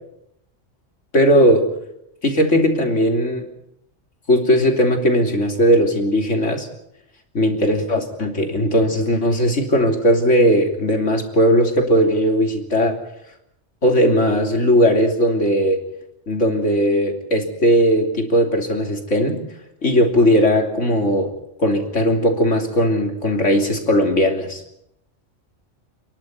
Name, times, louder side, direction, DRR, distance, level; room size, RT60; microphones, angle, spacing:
voice 1, 1.1-1.6 2.2-3.5 4.3-6.7 7.3-12.9 13.8-15.8 16.3-19.4 19.8-21.3 21.6-24.6, equal, 75° left, 3 dB, 3.5 m, -18 dB
29.0 x 11.5 x 9.4 m, 0.81 s
omnidirectional pair, 1.3 m